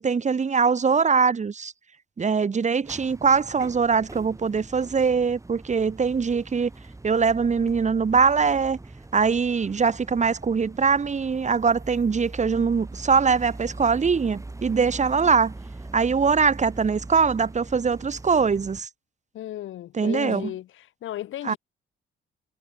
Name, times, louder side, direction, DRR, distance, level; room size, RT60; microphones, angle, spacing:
voice 1, 0.0-1.7 2.2-6.7 7.0-8.8 9.1-15.5 15.9-18.9 19.9-20.5 21.4-21.5, right 5 dB, 35° right, 2.8 m, -22 dB
sound 1, 2.8-18.8, right 2 dB, 15° right, 3.2 m, -41 dB
voice 2, 19.3-20.7 21.0-21.6, left 13 dB, 80° left, 7.2 m, -34 dB
cardioid pair, 90°, 20 cm